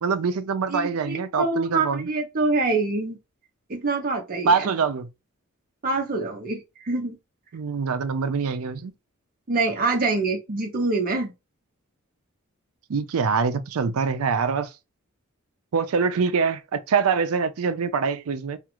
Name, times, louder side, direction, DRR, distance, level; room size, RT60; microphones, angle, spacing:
voice 1, 0.0-2.1 4.4-5.1 7.5-8.9 12.9-14.7 15.7-18.6, right 5 dB, 85° right, 0.5 m, -24 dB
voice 2, 0.7-3.2 3.7-4.7 5.8-7.2 9.5-11.3, right 3 dB, 40° right, 0.6 m, -25 dB
2.5 x 2.4 x 2.8 m
head